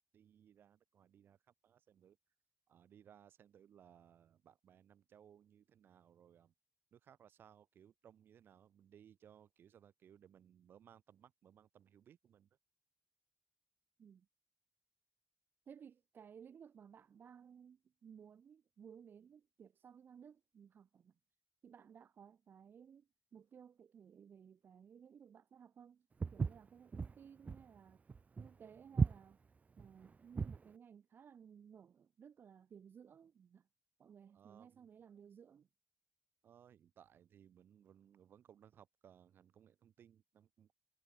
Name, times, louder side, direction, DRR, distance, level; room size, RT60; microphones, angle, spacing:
voice 1, 0.1-1.4 1.6-2.2 2.7-6.5 6.9-12.5 34.3-34.9 36.4-40.7, right 9 dB, 90° right, 7.7 m, -64 dB
voice 2, 15.7-21.1 21.6-26.1 26.3-28.0 28.4-29.4 29.8-33.6 34.0-35.7, right 7 dB, 70° right, 2.6 m, -58 dB
Walk footsteps, 26.2-30.7, right 5 dB, 45° right, 0.8 m, -37 dB
cardioid pair, 85°, 4 cm